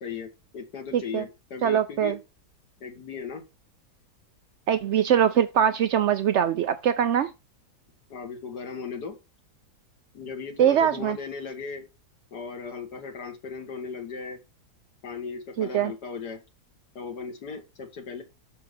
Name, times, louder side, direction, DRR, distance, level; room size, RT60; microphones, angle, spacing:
voice 1, 0.0-2.2 2.8-3.4 8.1-9.2 10.1-11.8 12.3-14.4 15.0-16.4 17.0-18.2, left 5 dB, 70° left, 2.0 m, -37 dB
voice 2, 0.9-1.2 1.6-2.1 4.7-7.3 10.6-11.2 15.6-15.9, right 9 dB, 90° right, 0.6 m, -22 dB
6.6 x 6.4 x 3.3 m
omnidirectional pair, 1.8 m